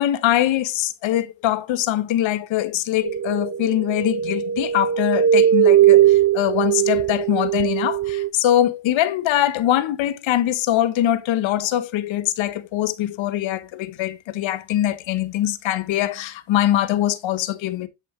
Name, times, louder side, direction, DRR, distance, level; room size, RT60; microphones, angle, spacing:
voice 1, 0.0-17.9, left 12 dB, 75° left, 1.1 m, -22 dB
sound 1, 3.0-8.3, right 10 dB, 35° right, 0.8 m, -19 dB
8.5 x 5.5 x 3.1 m
cardioid pair, 75°, 46 cm